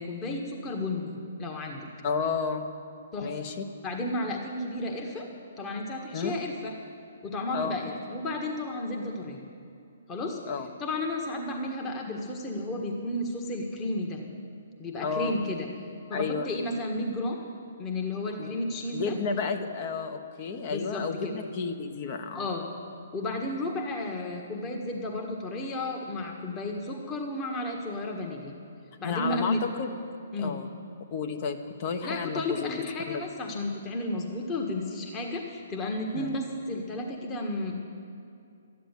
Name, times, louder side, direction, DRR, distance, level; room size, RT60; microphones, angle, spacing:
voice 1, 0.0-1.9 3.1-3.4 3.8-5.3 5.6-6.7 7.2-9.4 10.1-10.4 10.8-14.2 14.8-15.7 16.1-17.4 17.8-19.2 20.7-21.3 22.3-22.7 23.1-28.5 29.0-29.6 30.3-30.6 32.0-37.8, left 2 dB, 20° left, 1 dB, 1.5 m, -32 dB
voice 2, 2.0-2.7 3.2-3.5 6.1-6.3 7.5-7.8 10.5-10.7 15.0-15.3 16.1-16.5 18.4-18.5 18.9-22.5 29.0-29.9 30.4-30.7 31.1-33.2 36.1-36.3, left 5 dB, 40° left, 6 dB, 1.2 m, -32 dB
13.0 x 10.0 x 8.3 m, 2.5 s
hypercardioid pair, 130°, 0 cm